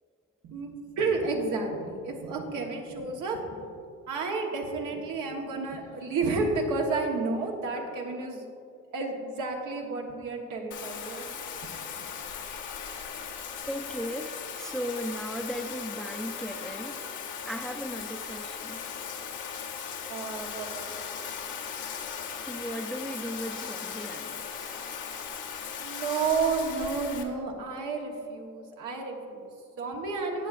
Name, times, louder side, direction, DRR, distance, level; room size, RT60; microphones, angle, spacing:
voice 1, 0.4-3.6 4.1-8.4 8.9-11.2 11.6-11.7 20.1-21.3 25.8-30.5, right 4 dB, 90° right, 1 dB, 1.3 m, -31 dB
Bathtub (filling or washing), 10.7-27.2, left 7 dB, 85° left, 1.0 m, -38 dB
voice 2, 13.7-17.0 17.5-18.8 22.5-24.8, equal, ahead, 5 dB, 0.5 m, -37 dB
17.5 x 6.1 x 2.5 m, 2.4 s
cardioid pair, 90°, 30 cm